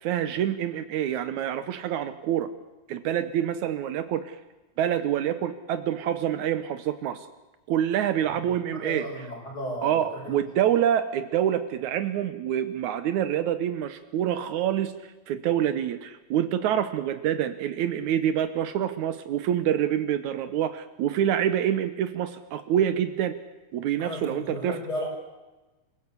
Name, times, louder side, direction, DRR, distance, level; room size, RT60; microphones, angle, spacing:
voice 1, 0.0-2.5 2.9-4.4 4.8-7.3 7.7-9.1 9.8-14.9 15.3-23.4 23.7-24.8, right 10 dB, 80° right, 11 dB, 2.4 m, -26 dB
voice 2, 8.7-10.4 24.0-25.1, left 1 dB, 30° left, -1 dB, 6.9 m, -35 dB
27.0 x 17.0 x 8.5 m, 1.1 s
omnidirectional pair, 3.4 m